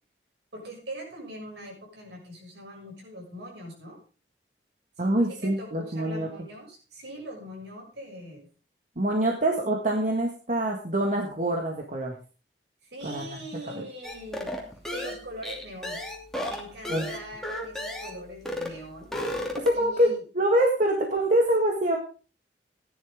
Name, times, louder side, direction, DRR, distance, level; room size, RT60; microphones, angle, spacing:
voice 1, 0.5-4.0 5.0-8.5 12.8-14.5 14.9-16.0 16.5-19.1 19.7-20.2, right 1 dB, 75° right, 0 dB, 6.7 m, -42 dB
voice 2, 5.0-6.3 9.0-12.1 13.0-13.2 13.8-13.9 16.9-17.1 19.6-22.0, right 1 dB, 45° right, 0 dB, 1.9 m, -25 dB
sound 1, 14.0-18.2 18.5-18.8 19.0-19.9, left 1 dB, 5° left, 2.7 m, -33 dB
16.5 x 10.5 x 3.7 m, 0.36 s
head